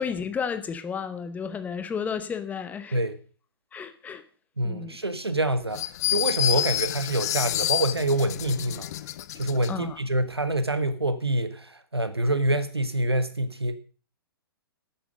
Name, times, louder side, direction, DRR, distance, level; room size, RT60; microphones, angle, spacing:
voice 1, 0.0-3.0 3.7-4.2 4.6-5.0 9.7-10.0, left 6 dB, 10° left, 0.9 m, -32 dB
voice 2, 4.6-5.8 6.1-8.9 9.3-11.7 11.9-13.8, right 1 dB, 85° right, 1.3 m, -26 dB
sound 1, 5.7-9.7, left 14 dB, 40° left, 0.6 m, -28 dB
12.0 x 8.9 x 5.1 m
figure-of-eight pair, 115°, 13 cm